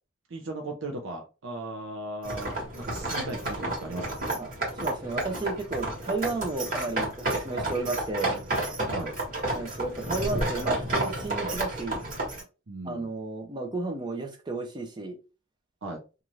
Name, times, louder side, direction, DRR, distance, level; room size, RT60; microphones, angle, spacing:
voice 1, 0.3-4.2 8.3-8.5 8.9-9.1 12.7-13.1 15.8-16.0, right 2 dB, 70° right, 0.6 m, -37 dB
sound 1, 2.2-12.4, right 1 dB, 45° right, 1.3 m, -31 dB
voice 2, 4.8-8.3 9.5-12.0 12.8-15.2, right 3 dB, 20° right, 0.5 m, -33 dB
2.6 x 2.4 x 3.0 m
head